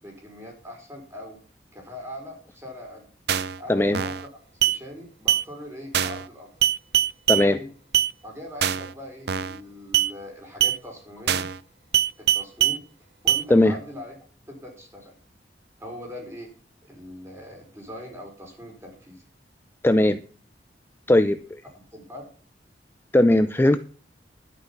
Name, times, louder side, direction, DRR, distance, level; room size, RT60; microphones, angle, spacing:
voice 1, 0.0-1.4 1.7-3.1 3.6-4.1 4.7-6.5 7.3-7.7 8.2-11.5 12.3-12.8 13.2-14.1 14.5-15.1 15.8-16.5 16.8-19.2 21.9-22.3, left 1 dB, 15° right, 1 dB, 5.0 m, -41 dB
sound 1, 3.3-3.6 3.9-4.3 4.6-4.8 5.3-5.4 5.9-6.3 6.6-7.4 7.9-8.1 8.6-8.9 9.3-9.6 9.9-10.1 10.6-10.8 11.3-11.6 11.9-12.8 13.3-13.4, right 10 dB, 65° right, 0.6 m, -22 dB
voice 2, 3.7-4.0 7.3-7.6 13.5-13.7 19.8-20.2 21.1-21.6 23.1-23.8, left 1 dB, 15° left, 11 dB, 0.5 m, -18 dB
11.5 x 9.8 x 5.7 m, 0.41 s
head